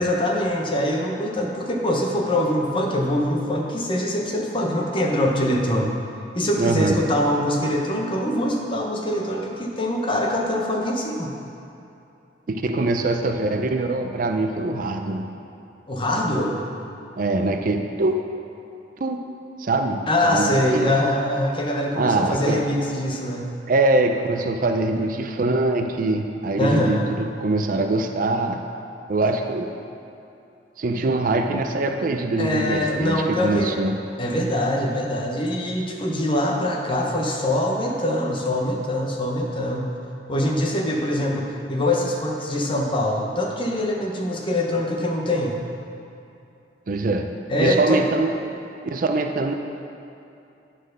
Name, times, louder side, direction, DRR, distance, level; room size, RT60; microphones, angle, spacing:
voice 1, 0.0-5.9 6.3-11.3 15.9-16.6 20.1-23.5 26.6-27.2 32.4-33.8 34.2-39.9 40.3-45.6 47.5-48.0, left 1 dB, 30° left, 0 dB, 0.9 m, -23 dB
voice 2, 6.6-7.0 12.5-15.3 17.2-18.2 19.0-19.2 19.6-20.8 22.0-22.6 23.7-28.6 29.1-29.7 30.8-33.9 46.9-47.3 47.6-48.3 48.8-49.5, right 2 dB, 50° right, 5 dB, 0.4 m, -23 dB
9.1 x 4.3 x 6.4 m, 2.7 s
head